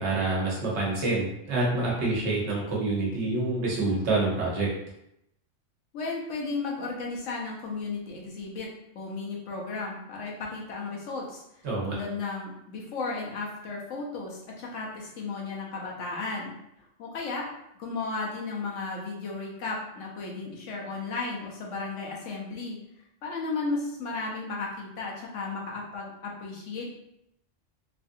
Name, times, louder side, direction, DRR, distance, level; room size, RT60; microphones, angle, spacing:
voice 1, 0.0-4.7 11.6-12.0, right 2 dB, 65° right, -4 dB, 1.2 m, -27 dB
voice 2, 5.9-16.5 16.8-17.5 17.8-22.8 23.2-26.9, left 3 dB, 85° left, -2 dB, 1.1 m, -34 dB
3.3 x 2.4 x 2.6 m, 0.81 s
omnidirectional pair, 1.3 m